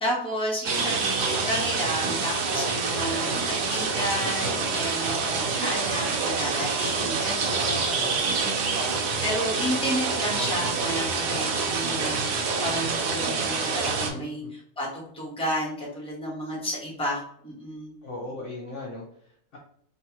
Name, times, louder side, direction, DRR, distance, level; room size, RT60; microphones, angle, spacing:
voice 1, 0.0-8.8 9.2-14.4 14.8-17.9, equal, 5° left, -5 dB, 0.9 m, -32 dB
sound 1, 0.6-14.1, right 4 dB, 80° right, 1.2 m, -27 dB
voice 2, 7.9-8.3 14.0-14.5 18.0-19.6, left 2 dB, 60° left, -2 dB, 0.8 m, -39 dB
3.2 x 3.0 x 2.9 m, 0.66 s
omnidirectional pair, 1.7 m